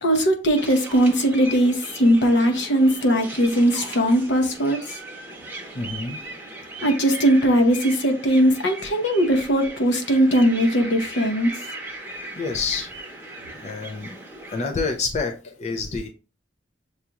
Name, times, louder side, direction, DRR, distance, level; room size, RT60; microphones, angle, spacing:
voice 1, 0.0-4.8 6.8-11.5, equal, 70° left, 0.8 m, -19 dB
sound 1, 0.6-14.6, right 1 dB, 10° right, 0.8 m, -38 dB
voice 2, 5.7-6.2 12.4-12.9 13.6-14.1 14.5-16.1, left 4 dB, 35° left, 0.4 m, -27 dB
6.5 x 2.4 x 2.8 m
head